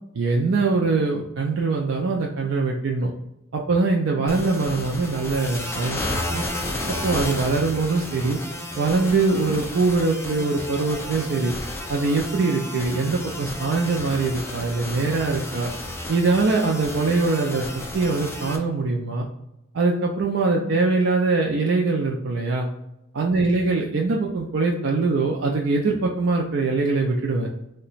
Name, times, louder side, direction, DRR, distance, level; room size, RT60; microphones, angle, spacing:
voice 1, 0.1-3.1 3.5-6.4 6.9-8.4 8.8-11.5 11.9-15.7 16.1-17.7 17.9-19.3 19.7-22.7 23.1-27.5, right 3 dB, 65° right, -1 dB, 0.4 m, -23 dB
sound 1, 4.3-18.6, left 1 dB, 15° left, 0.4 m, -32 dB
2.9 x 2.2 x 3.9 m, 0.88 s
head